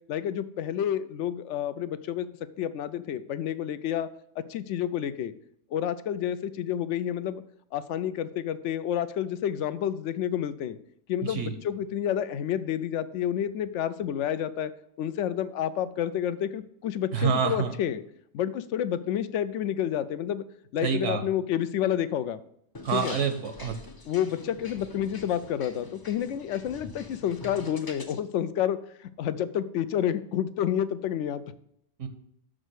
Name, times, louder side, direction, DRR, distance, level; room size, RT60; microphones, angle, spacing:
voice 1, 0.1-2.3 2.6-4.1 4.4-5.3 5.7-7.4 7.7-10.8 11.1-14.7 15.0-18.0 18.3-20.4 20.7-22.4 22.9-23.2 24.1-31.4, left 10 dB, 75° left, 13 dB, 0.9 m, -29 dB
voice 2, 11.2-11.5 17.1-17.8 20.8-21.2 22.8-23.7 32.0-32.1, right 6 dB, 75° right, 7 dB, 1.2 m, -27 dB
sound 1, 22.7-28.2, left 2 dB, 30° left, 0.4 m, -45 dB
6.5 x 5.0 x 6.2 m, 0.73 s
omnidirectional pair, 1.3 m